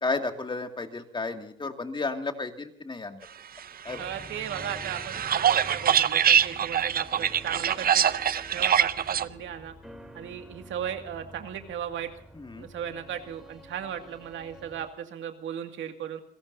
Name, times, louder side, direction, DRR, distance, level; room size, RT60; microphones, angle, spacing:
voice 1, 0.0-3.2 3.8-4.1 12.3-12.7, left 3 dB, 25° left, 5 dB, 2.3 m, -32 dB
sound 1, 3.8-14.9, equal, ahead, 3.5 m, -48 dB
sound 2, 3.9-9.2, right 9 dB, 50° right, 0.7 m, -24 dB
voice 2, 4.0-9.7 10.1-12.1 12.5-16.2, right 9 dB, 75° right, 6 dB, 2.2 m, -36 dB
29.0 x 17.5 x 2.7 m, 0.68 s
cardioid pair, 90°, 20 cm